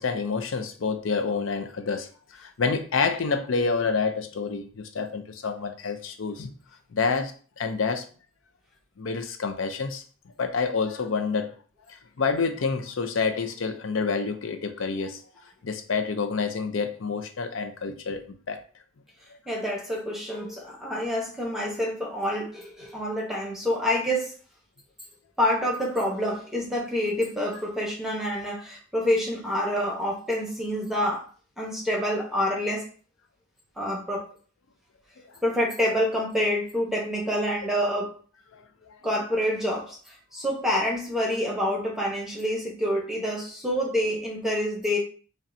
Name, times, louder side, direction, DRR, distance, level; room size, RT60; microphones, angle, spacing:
voice 1, 0.0-6.5 6.9-8.0 9.0-10.0 10.4-11.5 11.9-15.2 15.6-18.6, left 4 dB, 75° left, 0.5 m, -28 dB
voice 2, 19.5-24.3 25.4-31.2 31.6-32.8 33.8-34.3 35.4-38.1 39.0-45.0, equal, ahead, 0.9 m, -27 dB
5.2 x 2.2 x 2.6 m
head